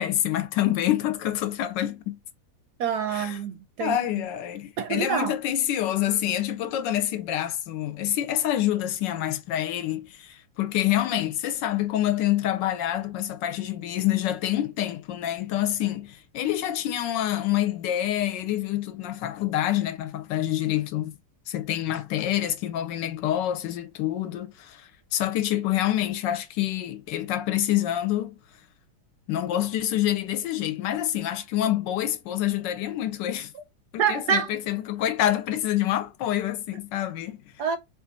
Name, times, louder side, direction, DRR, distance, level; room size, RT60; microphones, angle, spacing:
voice 1, 0.0-2.2 3.1-3.4 3.8-21.1 21.5-28.4 29.3-33.5 33.9-37.4, left 12 dB, 75° left, 1.2 m, -27 dB
voice 2, 2.8-4.2 4.8-5.3 34.0-34.5 37.6-37.8, right 7 dB, 75° right, 1.0 m, -26 dB
4.4 x 2.5 x 3.9 m
omnidirectional pair, 2.1 m